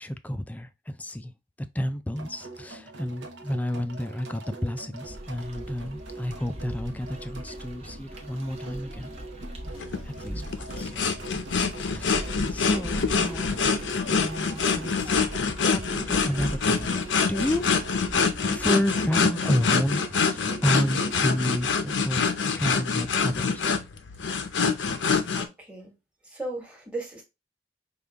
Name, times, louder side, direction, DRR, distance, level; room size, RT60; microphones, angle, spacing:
voice 1, 0.0-1.3 1.7-9.1 10.0-10.9 11.9-13.5 14.1-15.2 15.6-17.8 18.4-22.3 22.5-23.7, equal, 10° left, 0.3 m, -31 dB
sound 1, 2.1-21.7, right 3 dB, 70° right, 0.8 m, -43 dB
sound 2, 5.0-18.7, equal, 35° right, 0.9 m, -40 dB
sound 3, 9.8-25.5, left 5 dB, 80° left, 0.6 m, -26 dB
voice 2, 25.3-25.9 26.2-27.2, right 2 dB, 5° right, 1.3 m, -36 dB
5.1 x 2.3 x 3.4 m
head